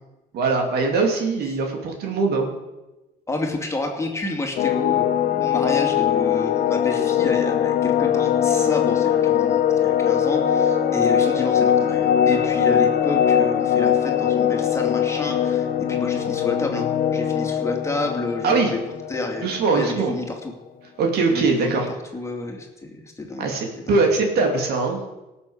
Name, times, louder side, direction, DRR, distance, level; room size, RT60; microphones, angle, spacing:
voice 1, 0.3-2.5 18.4-18.7 19.4-20.1 21.0-21.9 23.4-25.0, right 4 dB, 70° right, 3 dB, 2.8 m, -21 dB
voice 2, 3.3-5.1 5.4-18.8 19.1-19.5 19.7-20.5 21.3-21.8 22.1-23.5 23.8-24.0, left 2 dB, 15° left, 2 dB, 2.6 m, -30 dB
sound 1, 4.6-19.8, left 9 dB, 60° left, 0.9 m, -21 dB
18.0 x 7.1 x 6.5 m, 1.1 s
cardioid pair, 110°, 17 cm